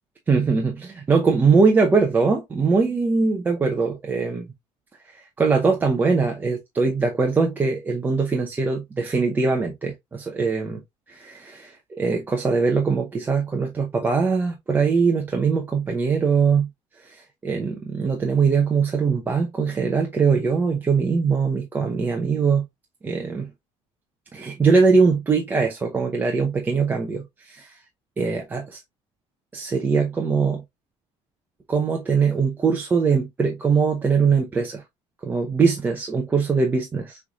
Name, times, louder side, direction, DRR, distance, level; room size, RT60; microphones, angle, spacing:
voice 1, 0.3-4.5 5.1-10.8 11.1-16.7 17.0-22.7 23.0-23.5 24.3-27.8 28.2-28.8 29.5-30.6 31.7-34.8 35.2-37.2, right 5 dB, 15° right, 0.7 m, -22 dB
6.5 x 3.2 x 2.3 m
cardioid pair, 165°, 11 cm